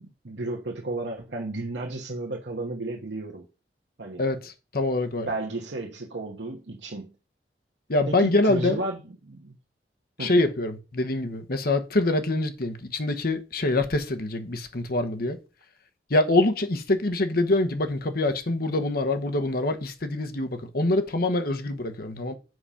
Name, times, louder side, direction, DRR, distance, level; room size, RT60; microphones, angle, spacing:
voice 1, 0.0-3.5 4.0-4.2 5.2-7.1 8.0-9.6 10.2-10.3, right 2 dB, 85° right, 1.2 m, -33 dB
voice 2, 4.2-5.3 7.9-8.8 10.2-15.4 16.1-22.3, left 2 dB, 60° left, 1.1 m, -25 dB
7.8 x 5.0 x 5.7 m
head